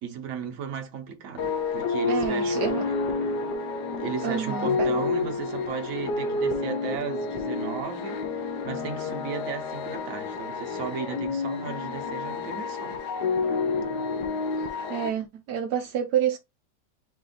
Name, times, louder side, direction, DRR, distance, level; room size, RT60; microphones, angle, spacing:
voice 1, 0.0-3.4 3.9-13.0, right 6 dB, 55° right, 1.3 m, -35 dB
sound 1, 1.4-15.1, left 4 dB, 75° left, 1.4 m, -29 dB
voice 2, 2.1-2.8 4.2-5.0 14.9-16.4, right 9 dB, 75° right, 1.2 m, -28 dB
4.9 x 2.7 x 3.9 m
omnidirectional pair, 1.8 m